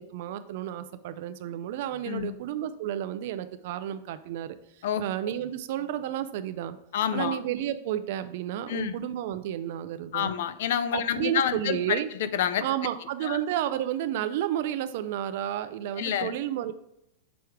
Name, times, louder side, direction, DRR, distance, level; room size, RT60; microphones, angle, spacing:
voice 1, 0.0-6.8 7.1-10.3 10.9-12.1 12.6-16.7, right 11 dB, 60° right, 11 dB, 0.4 m, -31 dB
voice 2, 6.9-7.4 8.7-8.9 10.1-12.6 13.2-13.4 16.0-16.3, left 9 dB, 70° left, 13 dB, 0.4 m, -28 dB
6.1 x 4.5 x 3.5 m, 0.81 s
supercardioid pair, 135°, 0 cm